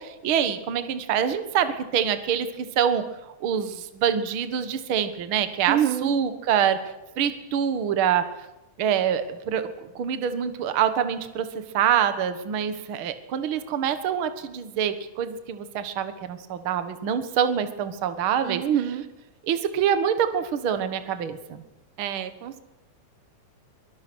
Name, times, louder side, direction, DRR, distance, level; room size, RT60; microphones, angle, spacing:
voice 1, 0.0-3.0 3.4-6.8 7.2-8.2 8.8-18.6 19.4-21.6, right 8 dB, 50° right, 10 dB, 1.9 m, -25 dB
voice 2, 5.7-6.1 18.4-19.0 22.0-22.6, right 10 dB, 90° right, 11 dB, 2.8 m, -26 dB
23.5 x 19.5 x 6.3 m, 0.95 s
omnidirectional pair, 3.5 m